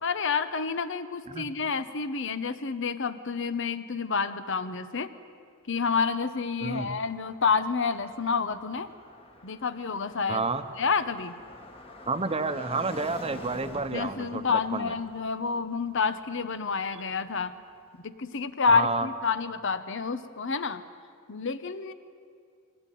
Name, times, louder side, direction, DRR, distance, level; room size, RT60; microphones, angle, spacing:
voice 1, 0.0-5.1 5.7-8.9 9.4-10.4 10.8-11.4 13.9-17.6 18.0-20.8 21.3-21.9, left 5 dB, 65° left, 12 dB, 1.1 m, -29 dB
Car passing by, 5.7-17.8, left 1 dB, 25° left, 1.7 m, -48 dB
voice 2, 6.6-6.9 10.3-10.6 12.1-14.9 18.7-19.1, right 3 dB, 30° right, 10 dB, 1.0 m, -30 dB
23.5 x 17.5 x 9.3 m, 2.3 s
head